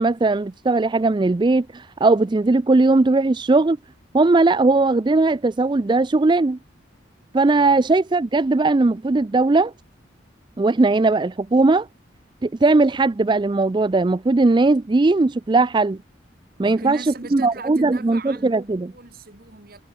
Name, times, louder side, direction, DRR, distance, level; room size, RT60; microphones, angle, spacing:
voice 1, 0.0-3.8 4.1-6.6 7.3-9.7 10.6-11.9 12.4-16.0 16.6-17.0 17.3-18.9, right 3 dB, 25° right, 0.4 m, -18 dB
voice 2, 16.6-19.8, right 3 dB, 50° right, 2.0 m, -39 dB
head